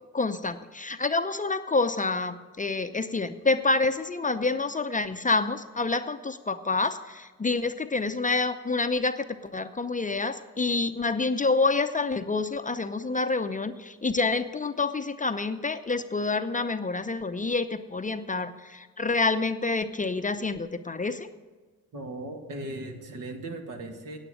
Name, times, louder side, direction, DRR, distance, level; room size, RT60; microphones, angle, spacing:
voice 1, 0.1-21.3, left 3 dB, 20° left, 9 dB, 0.6 m, -28 dB
voice 2, 21.9-24.2, right 2 dB, 65° right, 4 dB, 1.9 m, -37 dB
9.0 x 9.0 x 7.7 m, 1.4 s
supercardioid pair, 65°, 35 cm